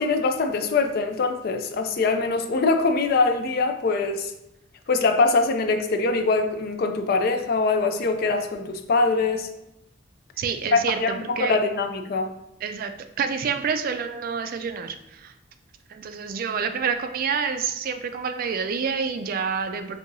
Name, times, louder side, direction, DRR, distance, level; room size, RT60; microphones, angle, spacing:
voice 1, 0.0-4.3 4.9-9.5 10.7-12.3, left 3 dB, 55° left, 0.4 m, -23 dB
voice 2, 10.4-11.6 12.6-12.9 13.2-15.3 15.9-20.0, right 6 dB, 50° right, 0.3 m, -28 dB
5.3 x 2.7 x 2.6 m
head